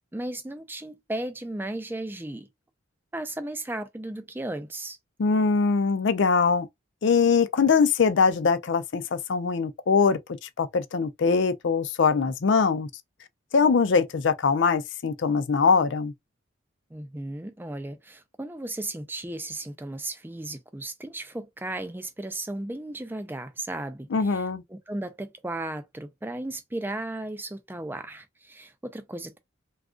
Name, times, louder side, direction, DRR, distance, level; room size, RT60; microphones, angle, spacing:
voice 1, 0.1-2.5 3.1-5.0 16.9-24.4 24.7-29.4, right 1 dB, 10° right, 0.4 m, -35 dB
voice 2, 5.2-6.7 7.0-12.9 13.5-16.1 24.1-24.6, left 5 dB, 60° left, 0.4 m, -22 dB
2.4 x 2.4 x 3.6 m
head